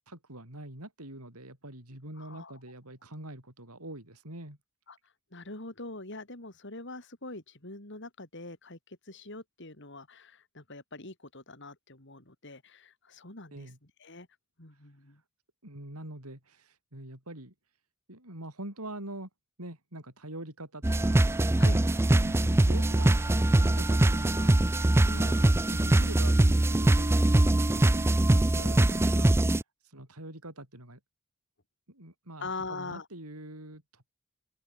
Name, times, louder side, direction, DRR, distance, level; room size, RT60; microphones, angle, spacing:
voice 1, 0.1-4.6 13.5-13.8 15.6-17.5 18.1-19.3 19.6-21.2 22.2-29.5 29.8-31.0 31.9-34.1, right 1 dB, 85° right, 7.8 m, -44 dB
voice 2, 2.2-2.6 4.9-5.0 5.3-13.7 14.0-14.3 14.6-15.2 21.6-21.8 25.0-25.3 32.4-33.1, left 3 dB, 55° left, 3.6 m, -43 dB
sound 1, 20.8-29.6, right 1 dB, 10° right, 0.3 m, -23 dB
open air
head